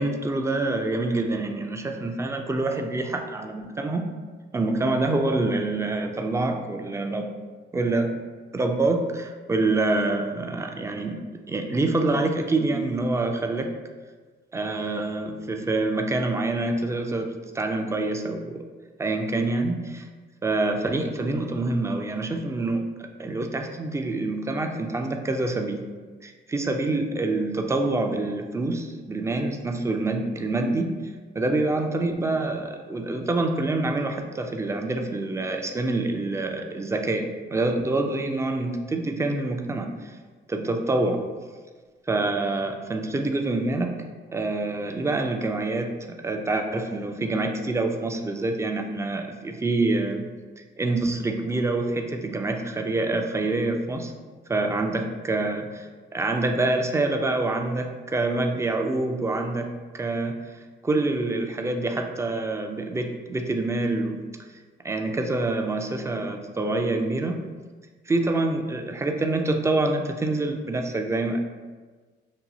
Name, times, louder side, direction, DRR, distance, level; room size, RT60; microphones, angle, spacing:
voice 1, 0.0-4.1 4.5-7.3 7.7-8.2 8.5-13.7 14.5-18.6 19.0-20.1 20.4-22.9 23.2-25.9 26.2-31.0 31.4-40.2 40.5-41.2 42.1-44.0 44.3-45.9 46.2-50.3 50.8-54.1 54.5-55.9 56.1-60.4 60.8-64.2 64.8-67.4 68.1-71.4, right 2 dB, 15° right, 4 dB, 0.3 m, -26 dB
2.7 x 2.2 x 4.0 m, 1.4 s
cardioid pair, 90°, 20 cm